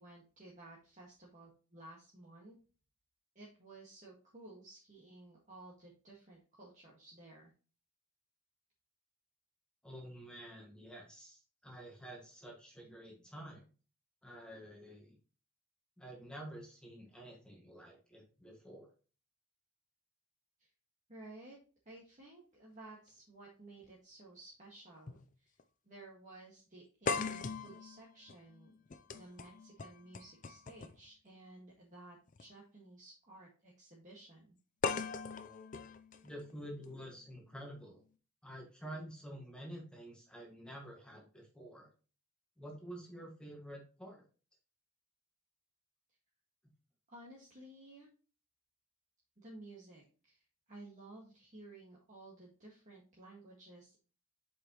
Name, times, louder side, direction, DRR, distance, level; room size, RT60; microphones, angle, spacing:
voice 1, 0.0-2.6 3.4-7.5 20.6-20.7 21.1-21.6 21.9-25.5 25.9-28.7 29.2-34.6 47.1-48.1 49.4-50.4 50.7-54.0, right 2 dB, 35° right, -5 dB, 1.7 m, -55 dB
voice 2, 9.8-13.6 14.2-15.1 16.0-18.9 36.2-38.0 38.4-41.9 42.6-44.2, right 1 dB, 5° left, -1 dB, 1.7 m, -49 dB
sound 1, 23.8-23.9 25.1-25.2 25.6-25.7 27.1-31.1 32.3-32.4 34.8-36.8, left 4 dB, 35° left, 0.4 m, -40 dB
7.6 x 5.2 x 3.0 m, 0.36 s
head